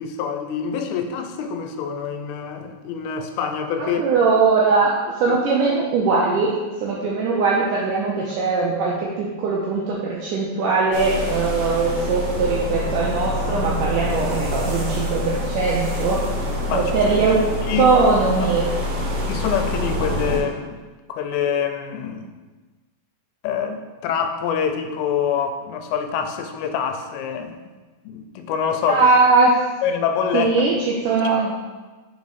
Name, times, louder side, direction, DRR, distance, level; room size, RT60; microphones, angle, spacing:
voice 1, 0.0-4.0 5.3-5.4 16.7-16.9 17.6-17.9 19.3-20.8 21.1-22.3 23.4-27.6 28.1-29.1 29.8-30.5, left 7 dB, 90° left, 6 dB, 2.5 m, -25 dB
voice 2, 3.8-6.5 6.8-16.4 16.7-17.4 17.8-18.6 28.9-29.5 30.3-31.5, right 4 dB, 80° right, -4 dB, 1.8 m, -20 dB
sound 1, 10.9-20.4, left 1 dB, 65° right, 1.8 m, -26 dB
5.1 x 4.7 x 4.1 m, 1.3 s
omnidirectional pair, 4.4 m